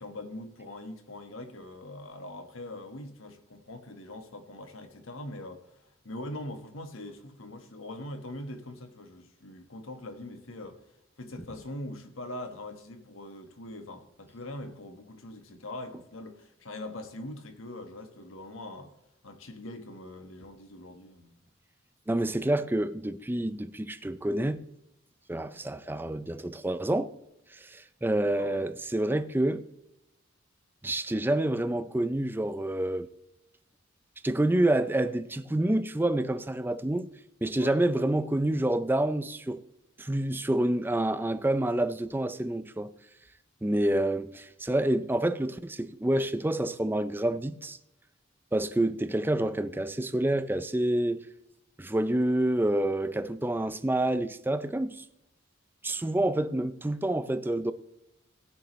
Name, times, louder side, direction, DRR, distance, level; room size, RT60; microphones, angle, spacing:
voice 1, 0.0-10.8 11.2-18.9 19.2-21.4 28.3-28.7 37.6-37.9, left 1 dB, 80° left, 1.3 m, -42 dB
voice 2, 22.1-24.6 25.3-27.1 27.5-29.6 30.8-33.1 34.2-37.1 37.4-39.6 40.0-42.9 43.6-47.8 48.5-51.2 51.8-55.0 55.8-57.7, right 1 dB, 10° right, 0.4 m, -28 dB
16.5 x 9.7 x 3.1 m
head